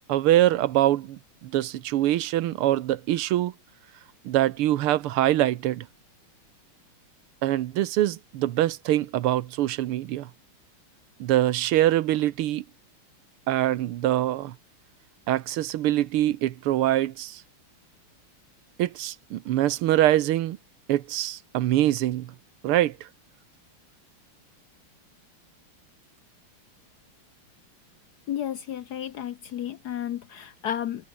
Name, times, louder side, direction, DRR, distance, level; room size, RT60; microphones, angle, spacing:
voice 1, 0.1-3.5 4.3-5.9 7.4-10.3 11.2-12.7 13.5-14.6 15.3-17.4 18.8-20.6 20.9-22.3 22.6-23.1, right 14 dB, 85° right, 1.8 m, -24 dB
voice 2, 28.3-31.1, left 10 dB, 65° left, 1.0 m, -32 dB
omnidirectional pair, 2.4 m